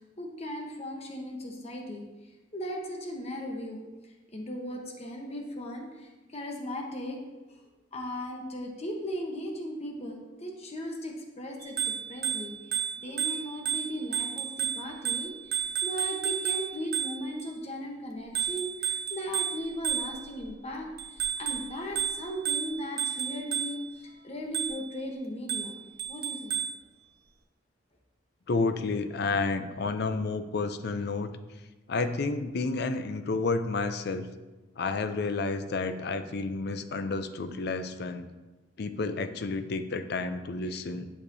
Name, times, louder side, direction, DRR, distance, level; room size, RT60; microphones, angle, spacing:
voice 1, 0.2-2.0 2.5-7.2 7.5-7.6 7.9-12.5 13.0-25.8 26.1-26.6, equal, 35° left, 1 dB, 1.0 m, -37 dB
Bicycle bell, 11.6-17.5 18.3-20.4 21.0-24.0 24.5-25.0 25.5-26.8, right 8 dB, 55° right, 1.0 m, -32 dB
voice 2, 28.5-31.3 31.9-34.3 34.8-38.3 38.8-41.1, left 3 dB, 60° left, 10 dB, 0.5 m, -30 dB
11.0 x 6.6 x 2.7 m, 1.1 s
head